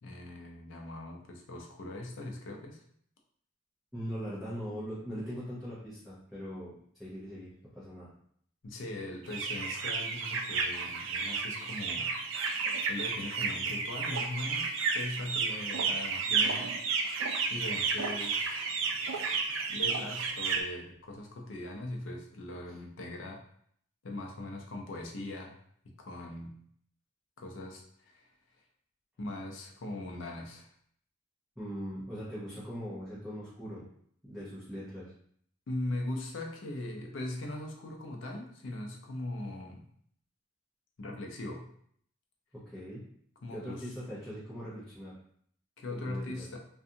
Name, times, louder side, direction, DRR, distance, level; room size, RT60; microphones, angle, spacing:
voice 1, 0.0-2.8 8.6-12.1 12.9-16.7 17.5-18.6 19.7-23.4 24.0-25.6 26.0-26.5 27.4-28.3 29.2-30.7 35.7-39.9 41.0-41.7 43.4-43.9 45.8-46.6, left 1 dB, 75° left, 1 dB, 0.5 m, -40 dB
voice 2, 3.9-6.7 7.0-8.1 22.7-22.8 31.6-33.9 34.2-35.1 42.5-43.0 43.5-45.1 45.9-46.5, equal, ahead, -12 dB, 0.7 m, -41 dB
sound 1, 9.2-20.6, right 4 dB, 75° right, 0.4 m, -32 dB
2.5 x 2.3 x 2.7 m, 0.65 s
head